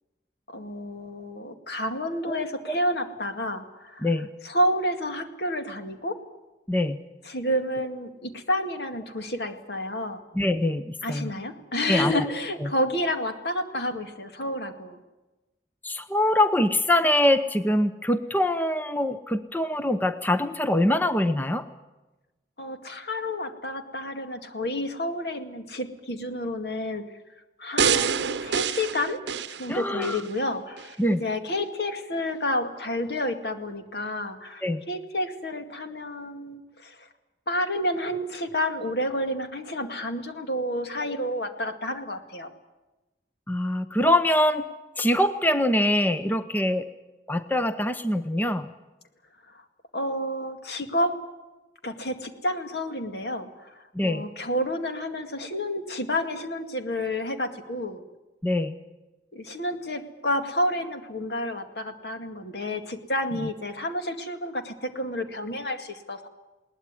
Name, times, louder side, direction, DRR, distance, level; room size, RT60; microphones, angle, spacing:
voice 1, 0.5-4.1 4.4-6.2 7.2-10.2 11.0-15.0 22.6-27.0 27.6-29.2 29.5-37.1 37.5-42.5 49.5-49.6 49.9-51.1 51.8-58.0 59.3-66.3, left 1 dB, 70° left, 6 dB, 2.2 m, -30 dB
voice 2, 2.3-2.8 4.0-4.3 6.7-7.0 7.8-7.9 10.3-11.3 11.9-12.2 12.6-12.7 15.8-21.6 29.7-30.2 31.0-31.2 34.6-34.8 41.0-41.2 43.5-44.7 45.0-46.8 47.3-48.7 53.9-54.3 58.4-58.7, left 1 dB, 10° left, 10 dB, 0.7 m, -24 dB
sound 1, 27.8-30.3 30.8-30.9, right 7 dB, 85° right, 0.7 m, -26 dB
21.0 x 18.5 x 9.7 m, 1.1 s
head